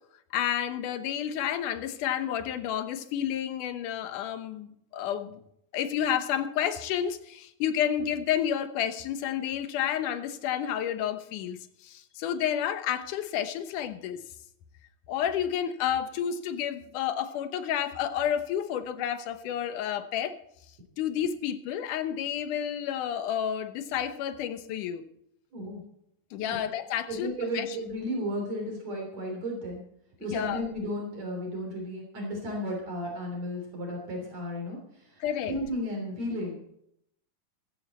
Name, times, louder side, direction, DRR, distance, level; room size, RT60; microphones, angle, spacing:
voice 1, 0.3-5.4 5.7-11.6 11.8-14.2 15.1-20.3 21.0-25.1 26.3-27.7 30.3-30.6 35.2-35.5, left 9 dB, 75° left, 10 dB, 2.4 m, -30 dB
voice 2, 25.5-25.8 26.5-26.6 27.1-29.8 30.2-36.6, equal, 55° right, 0 dB, 4.4 m, -34 dB
15.0 x 13.5 x 4.3 m, 0.75 s
omnidirectional pair, 3.8 m